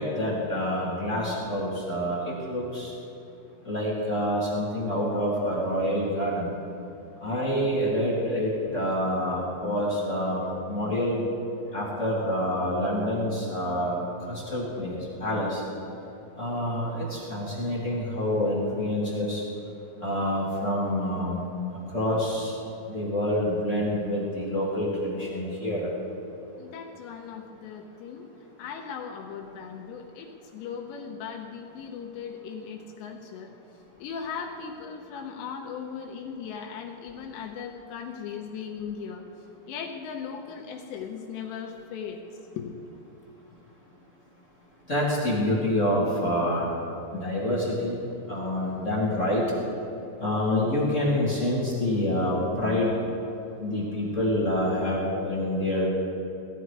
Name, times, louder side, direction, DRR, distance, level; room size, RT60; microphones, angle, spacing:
voice 1, 0.0-2.9 3.6-6.5 7.2-11.3 11.7-15.6 16.4-19.4 20.0-21.4 21.9-22.5 22.9-25.9 44.9-46.7 47.1-48.0 48.3-49.4 50.2-52.9 53.6-55.9, left 1 dB, 35° left, -6 dB, 1.1 m, -27 dB
voice 2, 26.6-28.3 28.6-33.5 34.0-39.2 39.7-42.2 42.6-42.8, left 6 dB, 80° left, 1 dB, 3.0 m, -38 dB
17.5 x 13.5 x 4.7 m, 2.9 s
omnidirectional pair, 5.2 m